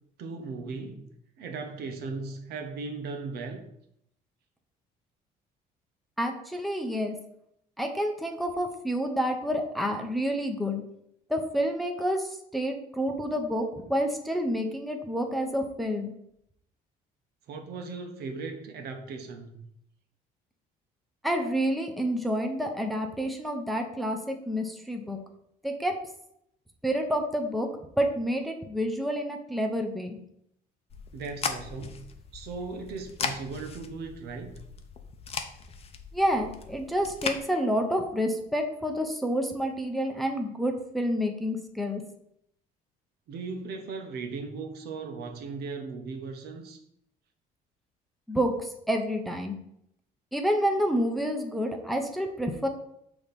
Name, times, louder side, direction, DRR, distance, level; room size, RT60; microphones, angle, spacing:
voice 1, 0.2-1.1 1.4-3.6 17.5-19.6 31.1-32.0 32.3-34.6 43.3-46.8, right 4 dB, 75° right, 4 dB, 1.0 m, -37 dB
voice 2, 6.2-7.2 7.8-10.8 11.3-16.1 21.2-25.2 25.6-26.0 26.8-27.7 28.0-30.2 36.1-42.0 48.3-49.6 50.3-52.7, equal, ahead, 3 dB, 0.8 m, -29 dB
sound 1, 30.9-37.4, left 5 dB, 35° left, 0.7 m, -38 dB
6.3 x 3.0 x 5.2 m, 0.75 s
cardioid pair, 110°, 17 cm